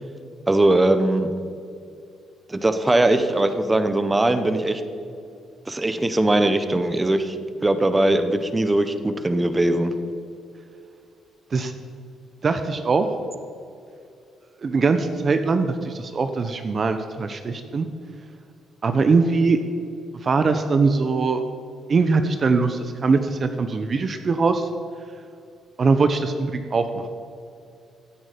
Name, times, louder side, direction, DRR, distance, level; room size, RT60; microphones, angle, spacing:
voice 1, 0.5-1.3 2.5-4.8 5.7-7.4 7.6-9.9, right 1 dB, 15° right, 9 dB, 1.0 m, -20 dB
voice 2, 12.4-13.1 14.6-17.9 18.8-19.6 20.2-21.4 21.9-24.7 25.8-27.1, right 4 dB, 40° right, 8 dB, 0.8 m, -21 dB
16.0 x 8.8 x 5.1 m, 2.5 s
cardioid pair, 90°, 0 cm